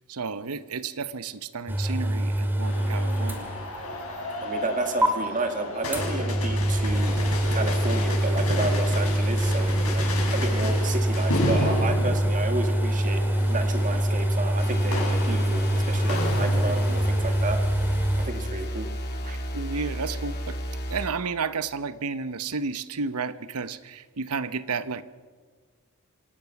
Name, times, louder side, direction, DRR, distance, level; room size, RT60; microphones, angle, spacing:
voice 1, 0.1-3.5 19.5-20.6 20.9-25.0, right 5 dB, 80° right, 14 dB, 0.8 m, -32 dB
sound 1, 1.7-4.0 4.3-4.4 5.0-5.1 5.9-18.3, right 1 dB, 10° right, 2.2 m, -25 dB
sound 2, 2.6-17.1, left 1 dB, 70° left, 5.9 m, -33 dB
voice 2, 4.4-7.2 7.5-13.2 13.5-17.6 18.2-18.9 19.2-19.4, right 2 dB, 35° right, 5 dB, 2.2 m, -31 dB
sound 3, 14.6-21.1, equal, 45° left, 2.9 m, -33 dB
26.5 x 18.0 x 5.9 m, 1.5 s
head